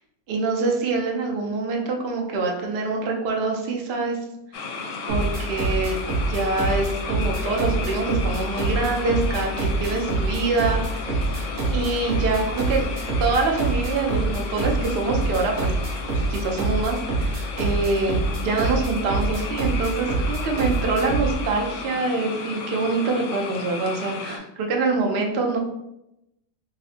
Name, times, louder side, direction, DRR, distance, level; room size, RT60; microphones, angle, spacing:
voice 1, 0.3-4.2 4.5-4.8 5.1-6.0 6.3-11.3 11.7-15.7 16.3-25.6, right 3 dB, 90° right, 1 dB, 0.5 m, -25 dB
sound 1, 4.5-24.4, left 4 dB, 65° left, 0.9 m, -34 dB
sound 2, 5.1-21.4, right 2 dB, 45° right, 0.9 m, -25 dB
5.1 x 2.1 x 2.7 m, 0.86 s
omnidirectional pair, 1.8 m